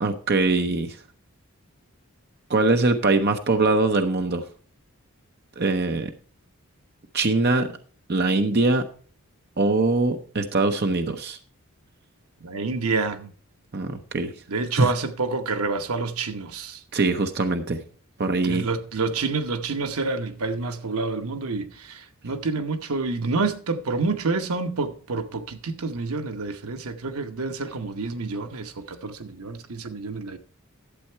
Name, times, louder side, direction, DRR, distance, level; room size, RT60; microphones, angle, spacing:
voice 1, 0.0-1.0 2.5-4.4 5.6-6.1 7.1-7.8 8.1-8.9 9.6-11.4 13.7-14.3 14.7-14.9 16.9-17.8 18.2-18.7, right 3 dB, 50° right, 0.8 m, -22 dB
voice 2, 12.4-13.3 14.5-16.8 18.4-30.4, right 3 dB, 80° right, 1.0 m, -28 dB
12.0 x 7.7 x 4.5 m
head